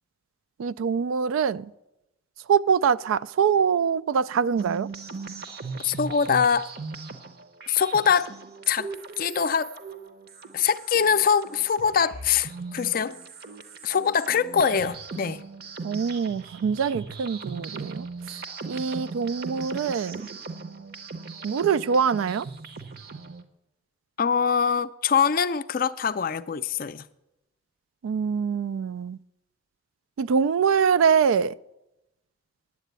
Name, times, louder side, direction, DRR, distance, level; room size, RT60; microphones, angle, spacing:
voice 1, 0.6-1.7 2.5-4.9 15.8-18.1 18.7-20.3 21.4-22.5 28.0-29.2 30.2-31.5, right 6 dB, 80° right, 0.3 m, -24 dB
sound 1, 4.6-23.4, right 4 dB, 50° right, 0.8 m, -39 dB
voice 2, 5.8-6.7 7.7-8.3 8.7-8.9 9.2-9.7 10.5-13.2 13.8-15.4 24.2-27.0, left 7 dB, 45° left, 0.4 m, -23 dB
9.7 x 8.3 x 8.1 m
head